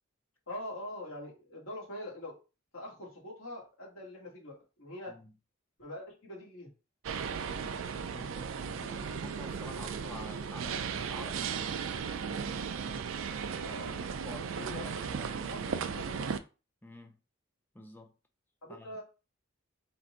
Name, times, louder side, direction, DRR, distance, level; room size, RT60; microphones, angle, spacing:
voice 1, 0.5-2.4 2.7-5.1 5.8-6.7 13.6-16.4 18.6-19.0, left 1 dB, 75° left, 2.0 m, -44 dB
sound 1, 7.0-16.4, right 6 dB, 65° right, 0.4 m, -36 dB
voice 2, 8.1-12.7 14.0-15.7 16.8-17.2 17.7-18.1 18.7-19.0, left 1 dB, 10° left, 0.6 m, -50 dB
4.4 x 2.6 x 3.7 m
head